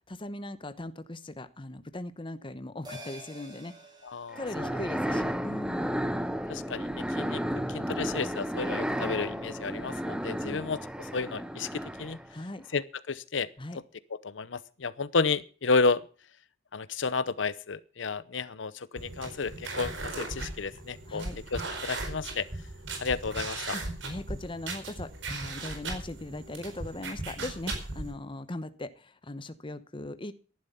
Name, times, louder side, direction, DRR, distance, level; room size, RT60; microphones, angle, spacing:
voice 1, 0.1-3.7 4.4-6.0 10.4-10.7 12.3-12.6 13.6-13.8 21.1-21.4 23.7-30.3, left 1 dB, 30° left, 12 dB, 1.0 m, -39 dB
sound 1, 2.8-7.6 7.9-8.0, equal, 25° right, 5.2 m, -51 dB
voice 2, 4.0-4.7 6.5-7.4 7.7-12.2 12.7-13.5 14.2-16.0 16.7-22.5 23.0-23.7, left 4 dB, 85° left, 17 dB, 0.8 m, -31 dB
sound 2, 4.3-12.4, equal, 5° right, 0.9 m, -33 dB
sound 3, 19.0-28.1, right 3 dB, 80° right, 4.7 m, -38 dB
13.5 x 11.5 x 5.6 m, 0.38 s
head